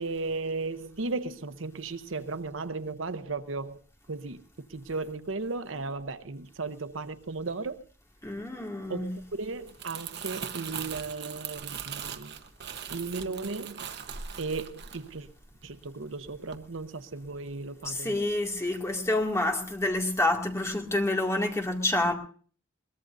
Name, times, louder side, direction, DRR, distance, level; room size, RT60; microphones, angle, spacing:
voice 1, 0.0-3.8 4.1-4.4 4.7-7.8 8.9-12.4 12.9-13.8 14.4-15.3 15.6-18.2, right 3 dB, 80° right, 0.9 m, -35 dB
voice 2, 8.2-9.1 17.8-22.1, left 2 dB, 15° left, 2.3 m, -28 dB
Crumpling crinkling, 9.5-15.9 16.3-16.5, right 7 dB, 60° right, 1.1 m, -40 dB
22.5 x 20.0 x 2.7 m
head